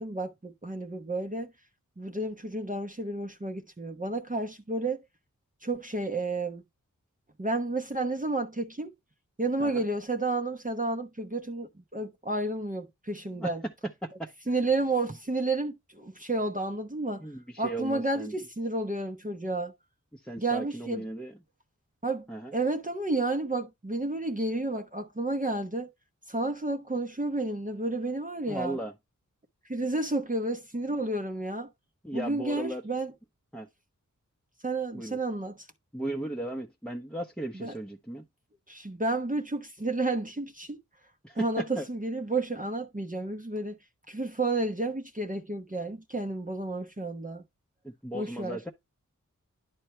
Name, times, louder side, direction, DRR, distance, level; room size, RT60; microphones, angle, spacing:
voice 1, 0.0-1.5 2.0-5.0 5.6-6.6 7.4-8.9 9.4-13.6 14.5-17.2 17.6-19.7 20.4-21.0 22.0-22.3 22.5-25.9 26.3-28.8 29.7-31.7 32.1-33.1 34.6-35.7 37.5-37.7 38.7-40.8 41.3-43.8 44.1-47.4 48.1-48.6, right 2 dB, 25° right, 0.9 m, -31 dB
voice 2, 17.2-18.3 20.1-21.3 22.3-22.5 28.5-28.9 32.0-32.8 33.5-33.7 34.9-35.2 35.9-38.2 41.2-41.9 47.8-48.7, right 1 dB, 5° left, 0.9 m, -36 dB
10.5 x 4.3 x 3.2 m
cardioid pair, 40°, 32 cm